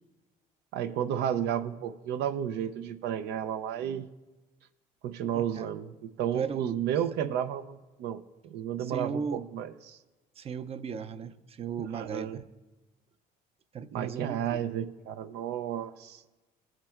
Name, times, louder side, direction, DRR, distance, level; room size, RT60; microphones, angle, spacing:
voice 1, 0.7-4.1 5.0-10.0 11.9-12.4 13.9-16.2, right 9 dB, 80° right, 9 dB, 0.5 m, -32 dB
voice 2, 5.3-5.7 6.3-6.8 8.8-9.5 10.4-12.4 13.7-14.6, right 6 dB, 35° right, 12 dB, 0.5 m, -36 dB
19.0 x 7.3 x 2.4 m, 1.2 s
cardioid pair, 115°, 17 cm